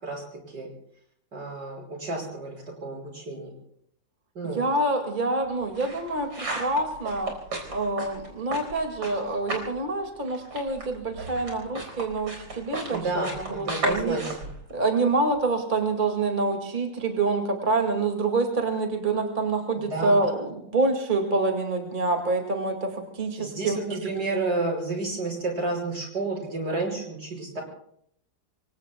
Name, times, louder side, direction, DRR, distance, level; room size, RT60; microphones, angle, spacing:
voice 1, 0.0-0.7 1.3-3.6 4.4-4.6 12.9-14.5 19.7-20.2 23.4-27.6, right 3 dB, 65° right, 0 dB, 6.1 m, -31 dB
voice 2, 4.6-7.3 7.7-14.2 14.7-23.8, right 3 dB, 25° right, 3 dB, 2.0 m, -26 dB
sound 1, 5.4-9.8 10.0-15.4, right 2 dB, 90° right, 5.0 m, -35 dB
27.0 x 24.5 x 2.2 m, 0.69 s
omnidirectional pair, 2.0 m